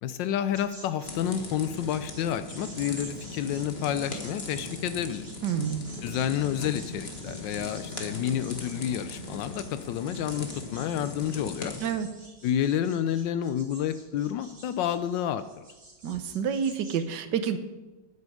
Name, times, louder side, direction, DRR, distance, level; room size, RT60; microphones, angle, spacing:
voice 1, 0.0-5.3 6.0-11.7 12.4-15.5, left 10 dB, 80° left, 12 dB, 1.2 m, -29 dB
sound 1, 0.5-17.0, right 2 dB, 45° right, 2.8 m, -49 dB
sound 2, 1.0-11.9, left 2 dB, 35° left, 1.6 m, -39 dB
voice 2, 5.4-5.8 11.8-12.1 16.0-17.6, right 7 dB, 75° right, 10 dB, 1.4 m, -28 dB
13.0 x 8.5 x 4.9 m, 1.2 s
omnidirectional pair, 2.0 m